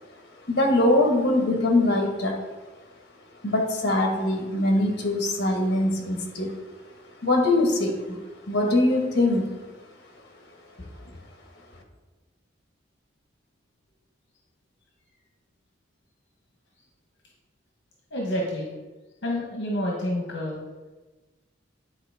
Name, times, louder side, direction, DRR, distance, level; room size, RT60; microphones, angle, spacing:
voice 1, 0.5-2.4 3.4-6.5 7.2-8.2 8.5-9.5, left 1 dB, 55° left, 1 dB, 1.4 m, -22 dB
voice 2, 18.1-18.7 19.2-20.6, left 1 dB, 70° left, -1 dB, 1.1 m, -28 dB
9.7 x 4.3 x 3.5 m, 1.2 s
head